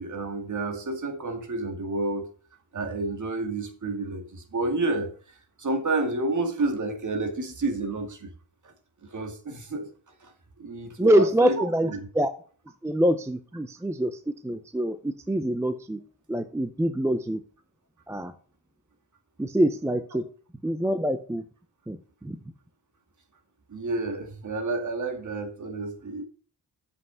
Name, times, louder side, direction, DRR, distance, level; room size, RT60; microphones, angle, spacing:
voice 1, 0.0-2.3 2.7-5.1 5.6-8.3 8.6-8.7 9.0-9.9 10.2-10.3 10.6-12.1 23.7-26.2, right 2 dB, 45° right, 5 dB, 2.1 m, -30 dB
voice 2, 11.0-12.3 12.8-16.0 16.3-17.4 18.1-18.3 19.4-20.3 20.6-21.4 21.9-22.0 22.2-22.4, right 1 dB, 5° right, 10 dB, 0.5 m, -25 dB
7.9 x 5.5 x 5.6 m, 0.42 s
wide cardioid pair, 110°, 42 cm